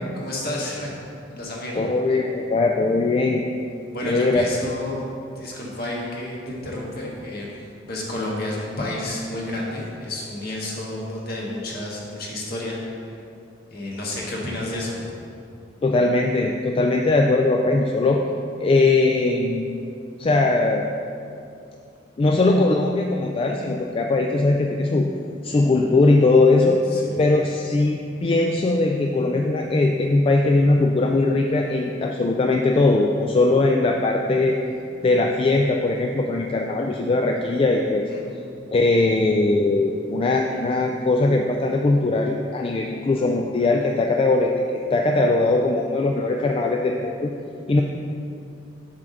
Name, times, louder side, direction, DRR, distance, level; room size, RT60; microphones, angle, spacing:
voice 1, 0.1-1.0 1.3-1.8 3.9-5.0 5.3-13.2 13.7-15.1 26.9-27.1 38.1-38.2, left 1 dB, 55° left, -4 dB, 1.5 m, -30 dB
voice 2, 1.7-3.4 4.0-4.4 15.8-18.2 18.6-19.6 20.2-20.9 22.2-25.1 25.4-26.8 27.2-34.6 35.0-38.1 38.7-47.3 47.7-47.8, left 2 dB, 30° left, 2 dB, 0.3 m, -20 dB
7.7 x 3.8 x 6.4 m, 2.6 s
head